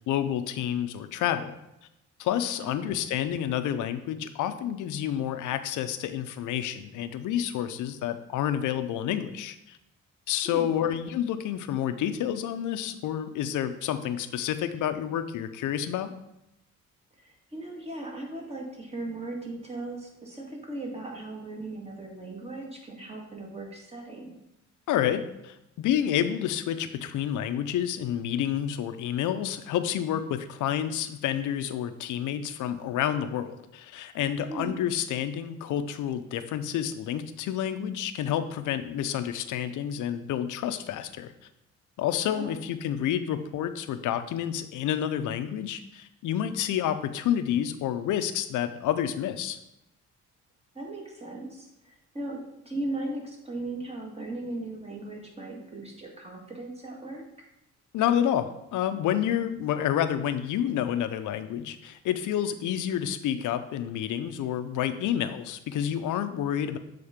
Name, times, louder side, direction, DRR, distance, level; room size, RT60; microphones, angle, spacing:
voice 1, 0.1-1.6 2.2-9.8 10.3-16.1 24.9-41.3 42.0-49.6 57.9-66.8, left 10 dB, 80° left, 10 dB, 0.6 m, -29 dB
voice 2, 2.6-3.0 10.4-10.8 17.2-24.4 34.5-34.8 42.3-42.6 50.7-52.4 52.7-57.2, right 2 dB, 20° right, -1 dB, 2.0 m, -38 dB
7.2 x 3.8 x 5.0 m, 0.87 s
cardioid pair, 90°, 30 cm